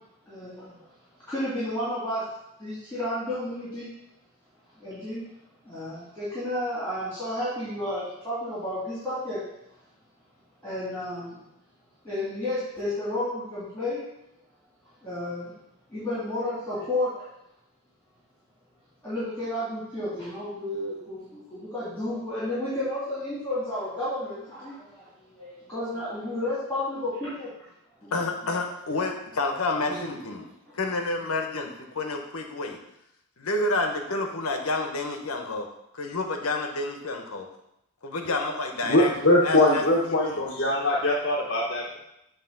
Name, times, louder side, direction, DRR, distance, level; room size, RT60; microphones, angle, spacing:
voice 1, 0.3-0.9 1.3-2.2 2.6-3.9 4.8-5.2 5.6-9.4 10.6-11.4 12.0-14.0 15.0-15.6 15.9-17.3 19.0-27.5 28.0-28.6 29.6-30.1 30.6-30.7 31.5-31.6, left 1 dB, 10° left, -12 dB, 2.4 m, -32 dB
voice 2, 28.1-32.8 33.4-35.7 35.9-37.5 38.0-39.1 39.4-40.4, left 2 dB, 85° left, 3 dB, 1.0 m, -29 dB
voice 3, 38.8-42.0, left 1 dB, 50° left, -3 dB, 0.9 m, -22 dB
7.5 x 3.1 x 5.9 m, 0.82 s
head